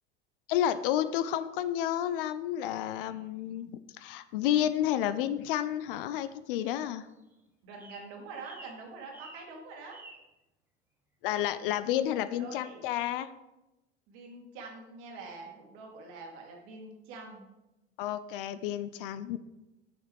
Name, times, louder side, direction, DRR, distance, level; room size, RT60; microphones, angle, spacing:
voice 1, 0.5-3.7 4.0-7.1 11.2-13.3 18.0-19.4, left 11 dB, 55° left, 13 dB, 0.5 m, -30 dB
sound 1, 6.6-7.4 7.8-8.1 8.4-8.8 9.1-9.5 9.9-10.3, right 1 dB, 5° right, 1.0 m, -51 dB
voice 2, 7.6-10.0 12.3-12.8 14.1-17.5, right 3 dB, 55° right, 1 dB, 2.0 m, -45 dB
6.6 x 6.5 x 3.4 m, 0.96 s
figure-of-eight pair, 80°, 33 cm